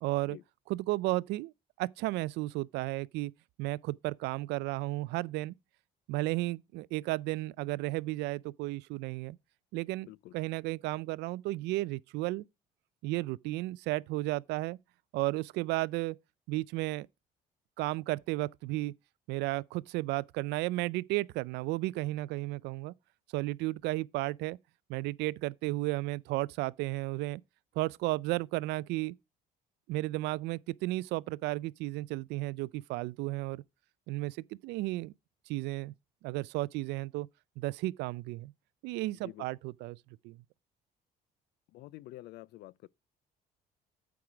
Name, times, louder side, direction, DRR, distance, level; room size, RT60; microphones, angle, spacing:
voice 1, 0.0-0.4 0.7-1.5 1.8-3.3 3.6-5.5 6.1-9.4 9.7-10.1 10.3-12.4 13.0-14.8 15.1-16.2 16.5-17.1 17.8-18.9 19.3-22.9 23.3-24.6 24.9-27.4 27.8-29.1 29.9-33.6 34.1-34.4 34.6-35.1 35.5-35.9 36.2-37.3 37.6-38.5 38.8-40.0 40.2-40.4, right 19 dB, 85° right, 0.4 m, -33 dB
voice 2, 39.1-39.5 41.7-42.9, left 17 dB, 75° left, 0.4 m, -48 dB
8.6 x 4.7 x 4.8 m
cardioid pair, 110°, 17 cm